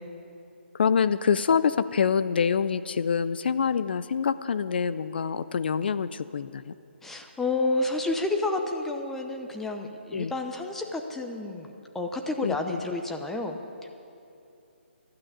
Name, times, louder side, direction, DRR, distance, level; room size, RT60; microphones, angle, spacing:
voice 1, 0.7-6.7 10.1-10.3 12.4-12.8, left 6 dB, 55° left, 14 dB, 0.4 m, -26 dB
voice 2, 7.0-13.9, left 2 dB, 5° left, 4 dB, 0.6 m, -30 dB
12.5 x 8.6 x 9.5 m, 2.7 s
figure-of-eight pair, 145°, 7 cm